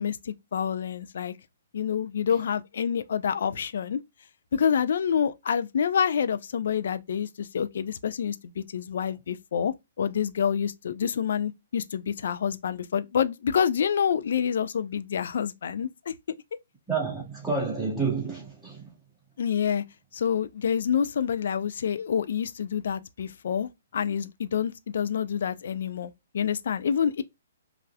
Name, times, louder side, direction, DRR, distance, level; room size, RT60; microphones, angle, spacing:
voice 1, 0.0-1.3 1.7-4.0 4.5-16.1 19.4-19.8 20.1-27.2, left 7 dB, 55° left, 0.4 m, -27 dB
voice 2, 16.9-18.8, right 4 dB, 5° right, 2.0 m, -29 dB
5.2 x 2.4 x 2.3 m
figure-of-eight pair, 125°, 0 cm